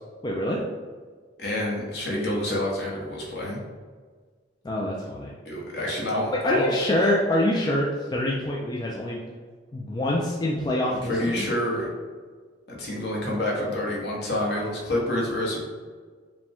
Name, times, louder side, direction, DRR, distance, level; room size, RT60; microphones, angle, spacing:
voice 1, 0.2-0.6 4.6-5.3 6.3-9.2 9.7-11.5, left 1 dB, 20° left, -3 dB, 0.4 m, -25 dB
voice 2, 1.4-3.6 5.4-6.7 10.9-11.9 12.7-15.6, left 1 dB, 60° left, -4 dB, 1.1 m, -28 dB
4.9 x 2.2 x 3.5 m, 1.5 s
head